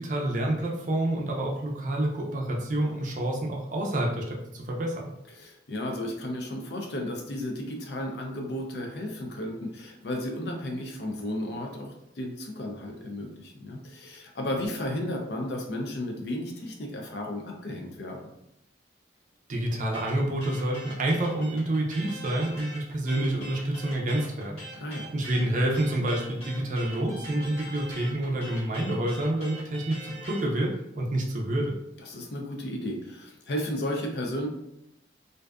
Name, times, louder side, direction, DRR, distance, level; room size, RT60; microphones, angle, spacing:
voice 1, 0.0-5.0 19.5-24.6 25.1-31.7, right 1 dB, 45° right, -1 dB, 0.4 m, -28 dB
voice 2, 5.3-18.2 24.8-25.1 32.0-34.5, left 1 dB, 60° left, 2 dB, 0.4 m, -34 dB
sound 1, 19.9-30.5, right 1 dB, 35° left, 1.0 m, -42 dB
2.5 x 2.3 x 2.2 m, 0.82 s
head